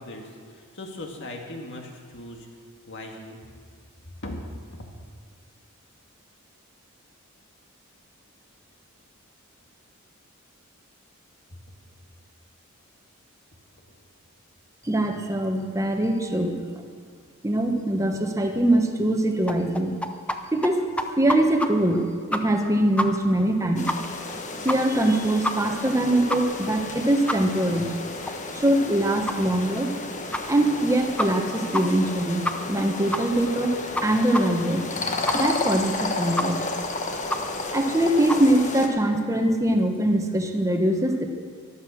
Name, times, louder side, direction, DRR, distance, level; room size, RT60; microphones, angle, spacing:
voice 1, 0.0-2.5 2.9-3.4 4.2-4.5 4.8-4.9, left 1 dB, 55° left, 2 dB, 2.1 m, -38 dB
voice 2, 14.8-16.6 17.4-19.9 20.5-23.9 24.6-27.9 28.5-29.9 30.5-33.7 34.0-34.9 35.3-36.6 37.7-41.3, right 1 dB, 15° right, 4 dB, 1.2 m, -23 dB
sound 1, 19.5-20.4 20.6-20.7 21.0-21.7 22.0-22.1 22.3-22.7 23.0-23.1 23.4-23.5 23.9-24.0 24.3-24.4 24.7-25.0 25.4-25.5 25.9-26.0 26.3-26.4 26.8-26.9 27.3-27.4 27.8-27.9 28.3-28.4 28.7-28.8 29.3-29.4 29.8-29.9 30.3-30.4 30.8-30.9 31.2-31.5 31.7-31.8 32.1-32.2 32.4-32.8 33.1-33.2 33.6-33.7 33.9-34.0 34.3-34.4 34.7-34.8 35.3-35.4 35.7-35.8 36.4-36.5 36.8-36.9 37.3-37.4 37.8-37.9 38.3-38.4, left 1 dB, 5° left, 0.7 m, -27 dB
sound 2, 23.8-38.9, left 2 dB, 35° left, 1.2 m, -32 dB
14.0 x 11.5 x 6.4 m, 2.1 s
head